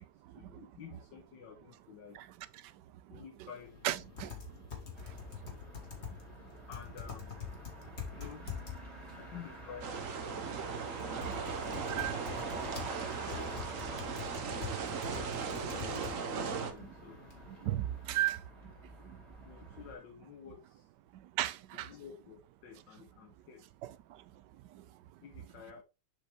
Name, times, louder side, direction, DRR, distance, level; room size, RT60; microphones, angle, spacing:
voice 1, 0.4-2.2 3.1-3.7 4.2-4.4 6.7-7.4 8.1-8.5 9.1-11.8 13.2-13.5 13.7-14.7 15.8-17.3 19.5-20.9 21.7-23.7 25.2-25.8, left 7 dB, 85° left, 1.7 m, -51 dB
sound 1, 3.6-18.2, left 8 dB, 40° left, 1.9 m, -47 dB
voice 2, 3.8-4.3 11.2-11.6 11.9-12.2 12.8-12.9 15.6-15.7 17.5-18.4 19.0-19.2 21.4-21.9 23.8-23.9, right 14 dB, 80° right, 1.2 m, -35 dB
Motor vehicle (road), 5.0-19.9, right 2 dB, ahead, 2.5 m, -48 dB
sound 2, 9.8-16.7, right 6 dB, 55° right, 1.2 m, -38 dB
7.0 x 5.3 x 3.3 m
omnidirectional pair, 1.9 m